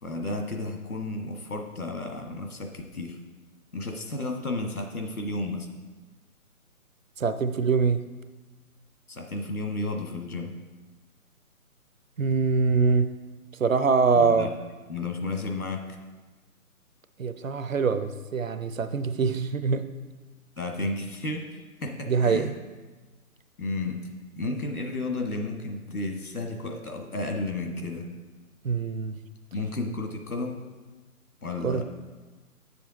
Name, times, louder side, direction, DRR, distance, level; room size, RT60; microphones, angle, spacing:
voice 1, 0.0-3.2 3.7-5.7 9.1-10.6 14.1-14.5 14.9-16.0 20.6-22.5 23.6-24.1 24.3-28.1 29.5-30.6 31.4-31.8, left 2 dB, 75° left, 3 dB, 1.4 m, -32 dB
voice 2, 7.2-8.0 12.2-13.1 13.6-14.5 17.2-19.8 22.1-22.5 28.6-29.2 31.6-31.8, right 5 dB, 60° right, 10 dB, 0.7 m, -24 dB
8.6 x 7.0 x 3.8 m, 1.3 s
figure-of-eight pair, 145°, 44 cm